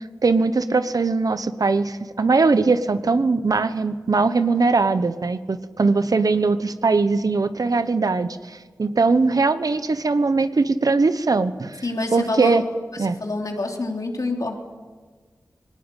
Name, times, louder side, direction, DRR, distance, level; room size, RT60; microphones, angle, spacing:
voice 1, 0.2-11.8 12.1-12.6 13.0-13.2, right 3 dB, 65° right, 12 dB, 1.1 m, -20 dB
voice 2, 11.8-12.6 13.0-14.6, left 2 dB, 60° left, 2 dB, 3.3 m, -27 dB
20.5 x 18.5 x 9.1 m, 1.5 s
wide cardioid pair, 55°, 7 cm